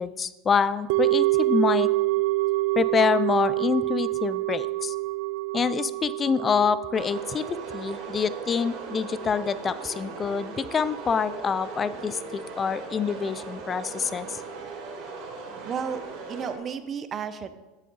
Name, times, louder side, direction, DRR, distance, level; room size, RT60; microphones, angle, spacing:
voice 1, 0.0-1.9 2.8-4.9 5.5-14.4, left 6 dB, 25° left, 16 dB, 0.4 m, -26 dB
sound 1, 0.9-11.2 11.4-11.5, right 19 dB, 70° right, 0.3 m, -27 dB
sound 2, 6.9-16.6, right 4 dB, 55° right, 3.4 m, -39 dB
voice 2, 15.6-17.5, right 6 dB, 30° right, 11 dB, 0.7 m, -33 dB
10.5 x 7.4 x 4.0 m, 1.1 s
supercardioid pair, 130°, 0 cm